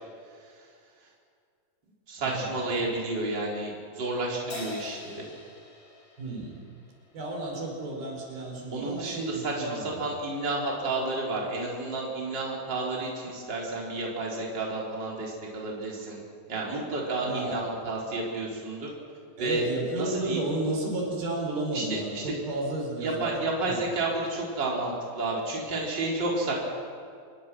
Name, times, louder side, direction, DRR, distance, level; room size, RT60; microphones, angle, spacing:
voice 1, 2.1-5.3 8.7-16.2 16.5-18.9 19.4-19.6 20.0-20.4 21.7-21.8 22.1-22.2 23.0-26.5, right 2 dB, 30° right, -3 dB, 4.5 m, -31 dB
Crash cymbal, 4.5-7.2, left 4 dB, 50° left, 4.8 m, -43 dB
voice 2, 6.2-6.6 7.1-10.0 17.2-17.6 19.4-23.4 23.6-23.8, right 2 dB, 85° right, 0 dB, 6.4 m, -32 dB
26.5 x 21.5 x 6.2 m, 2.2 s
omnidirectional pair, 4.2 m